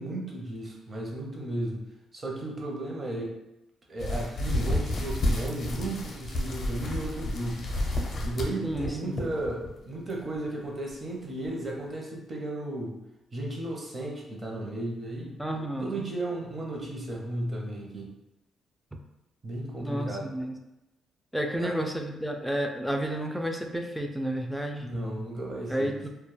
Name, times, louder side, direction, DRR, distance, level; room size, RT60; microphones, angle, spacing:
voice 1, 0.0-1.8 2.1-3.3 3.9-7.7 8.2-13.0 13.3-15.3 15.8-18.1 19.4-20.3 21.6-21.8 24.8-26.0, right 1 dB, 35° right, -1 dB, 0.7 m, -34 dB
sound 1, 4.0-9.7 10.1-10.4 10.9-11.0 11.4-11.5, left 1 dB, 50° left, 0.6 m, -30 dB
voice 2, 8.6-9.3 15.4-16.0 19.8-20.5 21.3-24.9 25.7-26.1, right 1 dB, ahead, 3 dB, 0.3 m, -31 dB
2.2 x 2.0 x 3.1 m, 0.93 s
cardioid pair, 90°, 0 cm